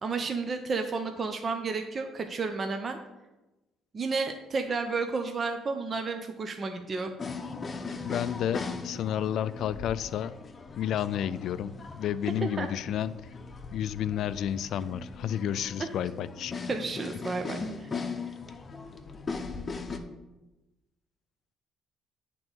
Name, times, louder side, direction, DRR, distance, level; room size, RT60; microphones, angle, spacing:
voice 1, 0.0-3.0 3.9-7.1 12.4-12.7 16.7-17.9, right 4 dB, 35° right, 5 dB, 0.7 m, -32 dB
sound 1, 7.2-20.0, left 4 dB, 30° left, 0.8 m, -39 dB
voice 2, 8.0-10.3 10.8-13.1 13.7-16.5, left 10 dB, 65° left, 15 dB, 0.3 m, -31 dB
8.5 x 3.8 x 6.2 m, 1.0 s
cardioid pair, 100°, 0 cm